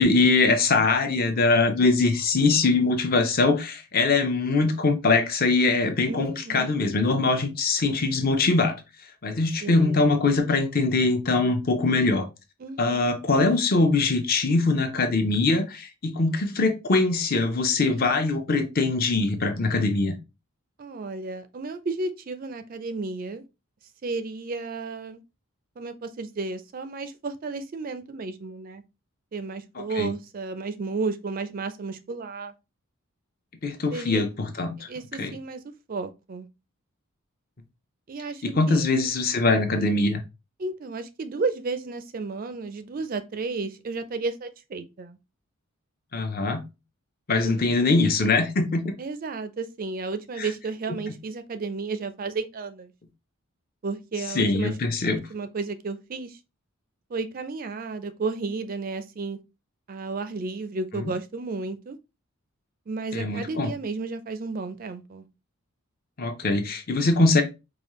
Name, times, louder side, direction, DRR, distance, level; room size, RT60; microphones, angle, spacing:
voice 1, 0.0-8.8 9.2-12.3 12.8-20.2 30.0-30.1 33.6-34.9 35.2-35.3 38.4-40.2 46.1-46.7 47.3-48.9 50.4-50.5 54.3-55.2 63.1-63.7 66.2-67.4, left 3 dB, 40° left, 0.7 m, -22 dB
voice 2, 6.1-6.7 9.6-10.1 12.6-13.1 20.8-23.4 24.0-25.2 25.8-28.8 29.3-32.5 33.9-34.4 34.9-35.6 35.9-36.5 38.1-39.1 40.6-45.2 47.4-48.1 49.0-52.9 53.8-54.7 55.1-56.4 57.1-59.4 59.9-62.0 62.9-65.3, right 3 dB, 40° right, 0.4 m, -33 dB
5.0 x 2.4 x 3.0 m
head